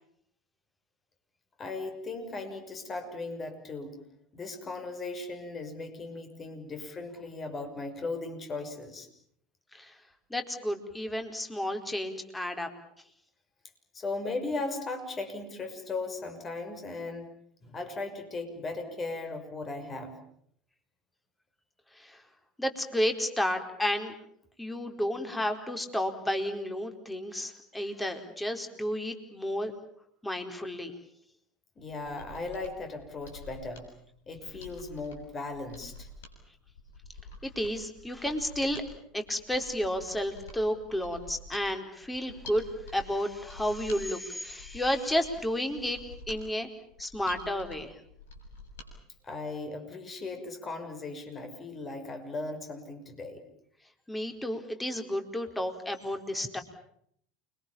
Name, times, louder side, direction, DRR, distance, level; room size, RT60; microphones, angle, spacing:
voice 1, 1.6-3.9 4.3-9.1 13.9-17.3 17.6-20.2 31.8-33.9 34.3-36.1 49.2-53.4, left 3 dB, 30° left, 6 dB, 6.2 m, -37 dB
voice 2, 10.3-12.7 22.0-22.2 22.6-24.1 24.6-29.7 30.2-30.9 37.4-38.8 39.1-42.7 42.9-46.0 46.3-46.7 47.0-47.9 54.1-56.6, equal, 10° left, 6 dB, 4.5 m, -32 dB
Mechanisms, 31.8-48.9 49.3-49.4, left 2 dB, 75° left, 7.1 m, -48 dB
29.5 x 24.0 x 7.2 m, 0.69 s
hypercardioid pair, 75°, 0 cm